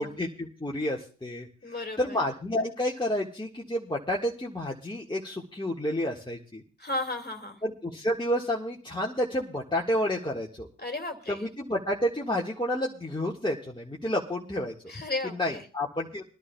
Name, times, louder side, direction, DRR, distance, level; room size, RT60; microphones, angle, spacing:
voice 1, 0.0-6.6 7.6-10.7 11.3-14.7 15.2-16.2, left 1 dB, 15° left, -2 dB, 1.6 m, -30 dB
voice 2, 1.6-2.2 6.8-7.6 10.8-11.4 14.9-15.6, left 2 dB, 30° left, 5 dB, 2.3 m, -34 dB
25.0 x 11.0 x 2.3 m, 0.38 s
cardioid pair, 45°, 33 cm